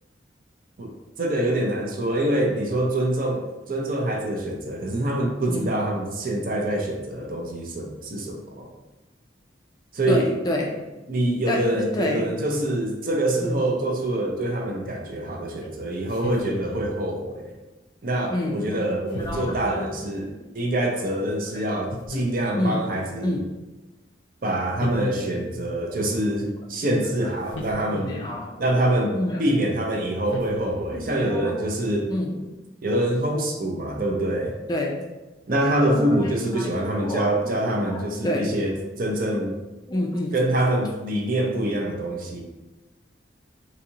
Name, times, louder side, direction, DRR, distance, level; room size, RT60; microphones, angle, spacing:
voice 1, 1.2-8.7 9.9-10.3 11.1-17.5 18.0-23.4 24.4-28.1 28.6-32.1 32.8-34.5 35.5-39.5 40.3-42.4, right 1 dB, 50° right, 1 dB, 0.5 m, -25 dB
voice 2, 10.1-10.7 11.5-12.2 13.4-13.6 15.6-15.7 18.3-19.9 21.5-21.6 22.6-22.9 23.2-23.5 26.9-27.0 28.0-28.8 29.1-29.4 30.9-31.6 32.1-32.5 34.7-35.0 35.9-36.7 37.0-38.5 39.9-40.3, left 1 dB, 20° left, 1 dB, 0.3 m, -29 dB
sound 1, 16.1-17.0 19.1-19.7 21.9-22.7 24.8-25.7 27.5-28.5 30.3-31.1, left 2 dB, 85° left, 0.5 m, -34 dB
3.9 x 2.7 x 2.7 m, 1.1 s
head